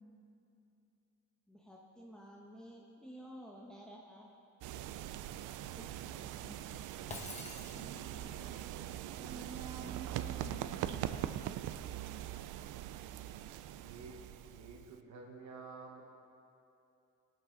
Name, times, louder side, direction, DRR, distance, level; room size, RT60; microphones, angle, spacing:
voice 1, 1.5-4.3, equal, 5° left, -3 dB, 1.1 m, -52 dB
sound 1, 4.6-15.0, right 12 dB, 85° right, 0.5 m, -42 dB
voice 2, 6.1-6.6 7.7-8.7 9.2-11.3, right 2 dB, 20° right, -3 dB, 2.7 m, -51 dB
Shatter, 7.1-8.3, left 2 dB, 20° left, 1.5 m, -47 dB
voice 3, 13.7-14.1 14.4-16.1, right 4 dB, 65° right, 1 dB, 1.3 m, -51 dB
17.5 x 8.9 x 3.9 m, 2.8 s
cardioid pair, 90°, 30 cm